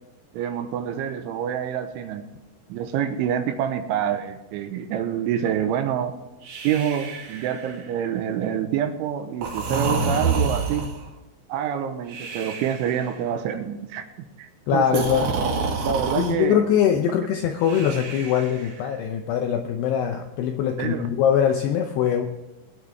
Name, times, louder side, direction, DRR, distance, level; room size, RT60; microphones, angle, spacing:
voice 1, 0.3-2.2 2.7-6.1 6.6-10.9 11.5-14.0 14.4-15.0 15.8-16.6 17.8-17.9 20.8-21.0, right 9 dB, 80° right, 7 dB, 3.3 m, -27 dB
Breathing, 6.4-8.0 9.4-11.1 12.1-13.1 14.9-16.3 17.6-18.8, right 4 dB, 60° right, 3.9 m, -28 dB
voice 2, 14.7-15.3 16.2-22.2, left 9 dB, 80° left, 4 dB, 2.4 m, -22 dB
21.0 x 9.6 x 3.5 m, 1.0 s
omnidirectional pair, 5.7 m